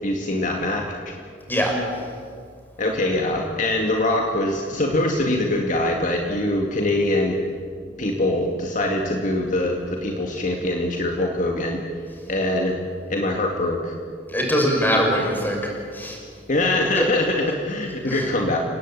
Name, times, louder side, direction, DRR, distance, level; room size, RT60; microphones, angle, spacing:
voice 1, 0.0-1.1 2.8-7.4 8.0-11.8 12.3-12.7 13.1-13.9 16.5-18.6, left 1 dB, 45° left, 1 dB, 2.4 m, -23 dB
voice 2, 14.3-15.6 15.9-16.2 17.0-17.1 18.1-18.3, equal, 10° left, 0 dB, 6.2 m, -22 dB
30.0 x 18.5 x 9.0 m, 2.2 s
head